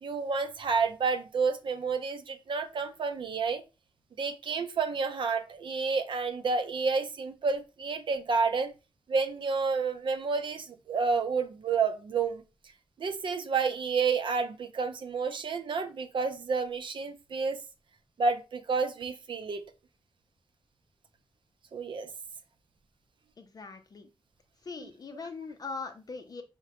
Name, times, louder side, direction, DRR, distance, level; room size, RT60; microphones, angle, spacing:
voice 1, 0.0-3.6 4.2-8.7 9.1-12.4 13.0-17.6 18.2-19.6 21.7-22.1, right 4 dB, 65° right, 0.5 m, -30 dB
voice 2, 23.4-24.1 24.7-26.4, left 4 dB, 45° left, 0.5 m, -41 dB
5.7 x 2.1 x 2.9 m
wide cardioid pair, 125°, 9 cm